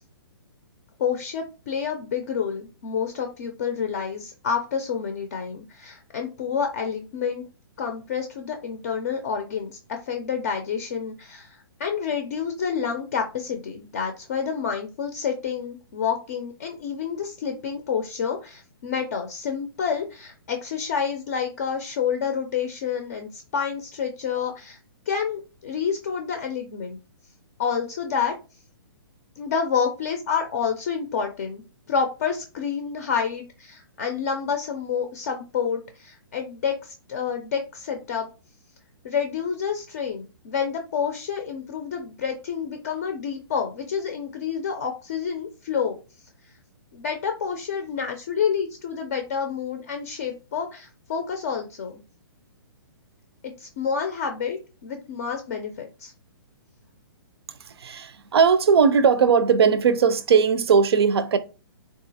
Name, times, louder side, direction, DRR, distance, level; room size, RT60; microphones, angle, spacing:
voice 1, 1.0-7.4 7.8-24.8 25.1-27.0 27.6-28.3 29.4-31.6 31.9-38.3 39.0-46.0 46.9-52.0 53.6-56.1, left 6 dB, 40° left, 0.4 m, -28 dB
voice 2, 57.6-61.4, right 6 dB, 85° right, 0.5 m, -19 dB
3.7 x 2.4 x 2.7 m
hypercardioid pair, 165°, 13 cm